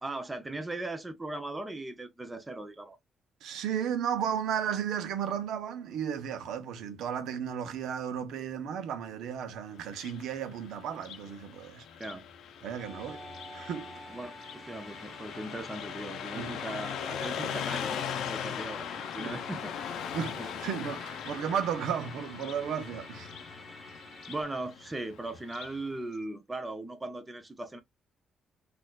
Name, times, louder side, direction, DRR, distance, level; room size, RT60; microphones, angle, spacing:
voice 1, 0.0-3.0 12.0-12.2 14.1-19.7 20.3-20.6 24.3-27.8, right 2 dB, 10° right, 0.6 m, -39 dB
voice 2, 3.4-11.8 12.6-13.2 13.5-13.9 16.4-16.5 19.2-19.4 20.1-23.3, right 8 dB, 85° right, 0.7 m, -34 dB
Car passing by, 9.8-25.8, left 8 dB, 75° left, 0.5 m, -40 dB
Musical instrument, 12.8-24.4, equal, 15° left, 0.9 m, -50 dB
4.1 x 2.5 x 2.3 m
cardioid pair, 145°, 0 cm